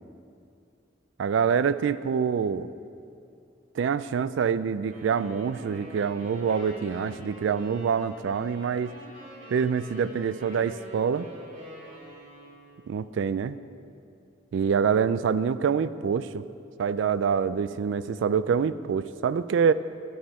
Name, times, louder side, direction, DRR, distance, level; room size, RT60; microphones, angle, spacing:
voice 1, 1.2-2.7 3.7-8.9 9.5-11.3 12.9-13.6 14.5-16.4 16.8-19.7, right 6 dB, 70° right, 15 dB, 0.3 m, -26 dB
sound 1, 4.9-12.8, right 1 dB, 40° right, 2.7 m, -46 dB
11.5 x 8.6 x 4.4 m, 2.5 s
head